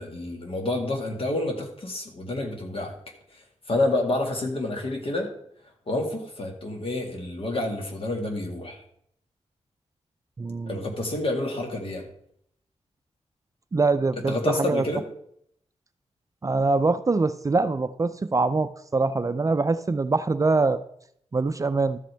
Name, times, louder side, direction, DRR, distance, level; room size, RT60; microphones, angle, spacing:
voice 1, 0.0-2.9 3.3-5.4 5.9-8.8 10.7-12.1 14.3-15.0, left 2 dB, 55° left, 3 dB, 1.9 m, -28 dB
voice 2, 10.4-10.8 13.7-14.8 16.4-20.8 21.3-22.0, right 3 dB, 30° right, 11 dB, 0.4 m, -24 dB
13.0 x 7.8 x 3.4 m, 0.69 s
wide cardioid pair, 105°, 12 cm